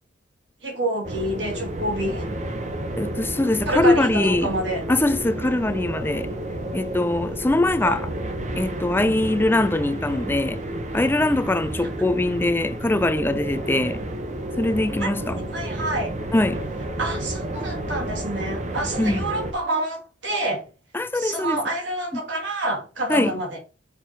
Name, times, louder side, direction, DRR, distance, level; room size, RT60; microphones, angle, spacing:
voice 1, 0.6-2.3 3.7-4.8 7.8-7.9 15.5-16.1 17.0-20.6 21.1-23.6, right 1 dB, 70° right, 2.9 m, -27 dB
sound 1, 1.0-19.5, right 1 dB, 40° right, 0.9 m, -31 dB
voice 2, 3.0-4.5 4.9-6.3 6.7-8.1 8.6-10.6 10.9-14.0 14.6-15.4 16.3-16.7 19.0-19.2 20.9-21.6 22.1-22.2 23.1-23.4, left 2 dB, 10° left, 0.4 m, -22 dB
6.5 x 4.7 x 4.5 m
head